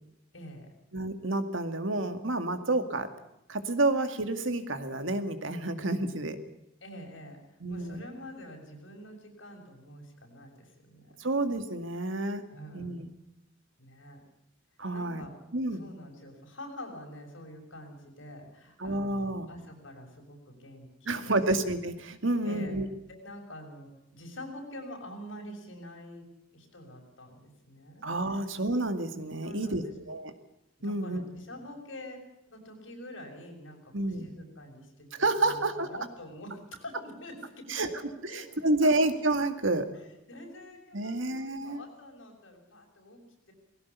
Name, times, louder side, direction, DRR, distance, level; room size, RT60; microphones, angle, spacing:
voice 1, 0.3-0.7 6.8-11.3 12.5-13.0 13.8-14.2 14.9-15.4 15.7-21.5 22.4-22.8 23.1-26.3 26.5-28.5 29.4-29.9 30.8-32.2 32.5-35.1 35.4-37.9 38.2-38.5 38.8-38.9 39.9-43.2, left 1 dB, 70° left, 1 dB, 6.6 m, -46 dB
voice 2, 0.9-3.1 3.5-6.4 7.6-8.0 11.2-12.4 12.7-13.1 14.8-15.2 15.5-15.9 18.8-19.5 21.1-22.9 28.0-30.3 30.8-31.2 33.9-34.4 35.2-35.9 37.7-37.9 38.3-39.9 40.9-41.8, right 2 dB, 85° right, 9 dB, 2.1 m, -29 dB
19.5 x 17.0 x 8.3 m, 0.84 s
head